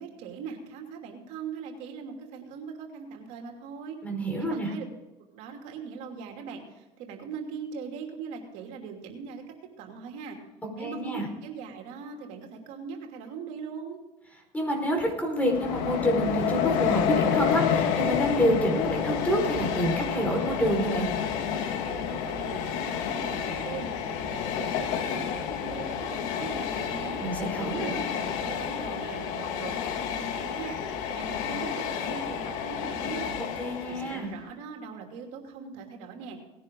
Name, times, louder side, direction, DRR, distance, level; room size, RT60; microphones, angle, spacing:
voice 1, 0.0-4.0 4.4-4.8 5.3-10.4 10.8-14.0 21.8-27.2 27.7-33.3 33.9-36.4, right 6 dB, 75° right, 2 dB, 2.9 m, -40 dB
voice 2, 4.0-4.7 10.8-11.3 14.5-21.1 27.2-27.9 33.6-34.3, equal, 10° left, 2 dB, 4.9 m, -27 dB
Train, 15.4-34.3, left 8 dB, 75° left, 1.9 m, -30 dB
19.0 x 10.5 x 3.9 m, 1.0 s
supercardioid pair, 110°, 12 cm